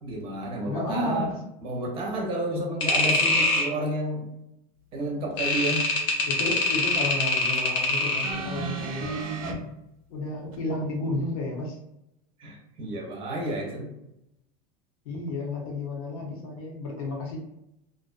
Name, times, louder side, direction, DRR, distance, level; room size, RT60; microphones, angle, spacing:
voice 1, 0.0-1.3 1.6-4.3 4.9-5.9 12.4-13.9, right 1 dB, 30° right, -1 dB, 0.5 m, -31 dB
voice 2, 0.7-1.4 6.2-9.2 10.1-11.8 15.0-17.4, left 2 dB, 80° left, 0 dB, 0.8 m, -32 dB
sound 1, 2.8-3.7 5.4-8.4, left 2 dB, 30° left, 0.4 m, -24 dB
sound 2, 8.2-9.5 10.5-10.6, right 4 dB, 85° right, 0.6 m, -32 dB
2.4 x 2.2 x 2.4 m, 0.84 s
cardioid pair, 175°, 18 cm